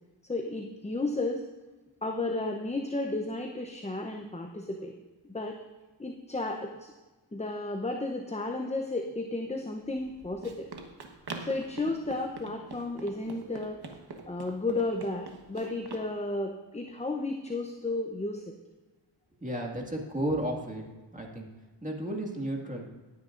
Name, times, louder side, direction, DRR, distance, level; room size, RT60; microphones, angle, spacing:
voice 1, 0.3-1.4 2.0-4.9 5.3-5.6 6.0-6.9 7.3-10.7 11.4-13.8 14.3-18.5, left 2 dB, 15° left, 3 dB, 0.7 m, -33 dB
Run, 9.9-16.1, right 3 dB, 55° right, 1.4 m, -44 dB
voice 2, 19.4-20.8 21.1-21.5 21.8-22.9, right 1 dB, 15° right, 0 dB, 2.0 m, -33 dB
17.5 x 9.6 x 2.6 m, 1.2 s
wide cardioid pair, 80°, 45 cm